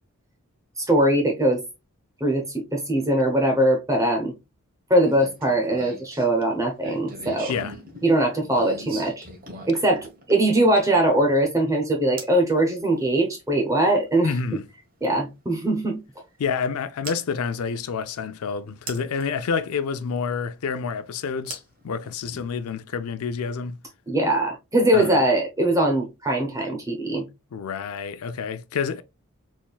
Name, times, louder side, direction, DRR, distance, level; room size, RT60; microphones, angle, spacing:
voice 1, 0.8-1.6 2.2-4.3 4.9-7.5 8.0-9.3 9.7-14.3 15.0-16.0 24.1-27.2, right 1 dB, 15° right, 0.8 m, -21 dB
sound 1, 5.0-11.0 12.2-12.4 14.3-14.4 17.0-17.2 18.9-19.3 21.5-22.5, right 2 dB, 40° right, 1.2 m, -40 dB
voice 2, 14.2-14.6 16.4-23.8 24.9-25.2 27.5-29.0, left 6 dB, 80° left, 0.4 m, -28 dB
4.3 x 3.5 x 2.3 m
head